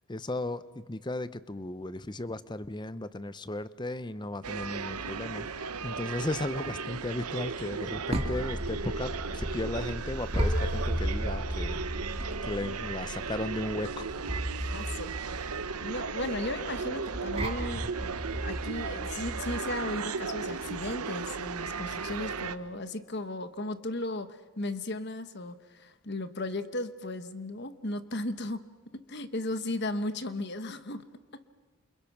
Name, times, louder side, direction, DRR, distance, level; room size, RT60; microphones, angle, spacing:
voice 1, 0.1-11.8 12.4-14.1, left 2 dB, 20° left, 15 dB, 0.7 m, -35 dB
sound 1, 4.4-22.6, right 5 dB, 90° right, 1.0 m, -36 dB
sound 2, 7.7-19.6, equal, 25° right, 2.7 m, -34 dB
voice 2, 14.6-15.5 15.8-28.7 28.9-31.1 31.3-31.4, left 2 dB, 50° left, 11 dB, 1.3 m, -36 dB
29.0 x 28.5 x 6.1 m, 1.4 s
head